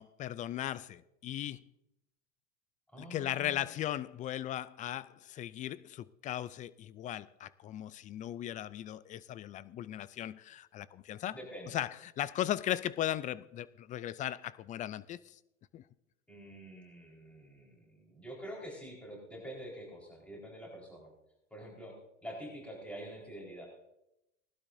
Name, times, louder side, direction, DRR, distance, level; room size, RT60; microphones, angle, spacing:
voice 1, 0.0-1.6 3.0-11.4 11.7-15.3 15.7-15.8, left 12 dB, 20° left, 0.3 m, -37 dB
voice 2, 2.9-3.7 11.3-11.8 16.3-21.1 21.5-21.9 22.2-23.7, equal, 5° left, 4.4 m, -46 dB
19.5 x 12.0 x 2.7 m
hypercardioid pair, 105°, 38 cm